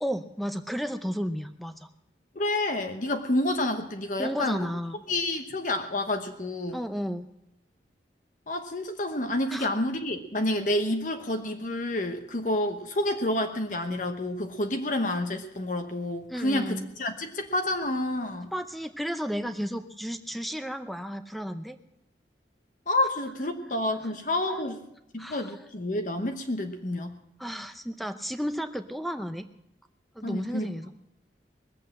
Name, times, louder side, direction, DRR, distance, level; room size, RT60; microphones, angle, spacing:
voice 1, 0.0-1.9 4.2-5.0 5.3-5.4 6.7-7.2 9.5-9.7 16.3-16.9 18.5-21.8 23.6-24.2 24.5-24.7 25.2-25.5 27.4-29.5 30.1-30.9, equal, ahead, 9 dB, 0.6 m, -33 dB
voice 2, 2.3-4.7 5.1-6.8 8.5-18.5 22.9-24.8 25.1-27.2 30.2-30.7, left 1 dB, 45° left, 5 dB, 1.0 m, -29 dB
20.0 x 8.1 x 7.6 m, 0.83 s
head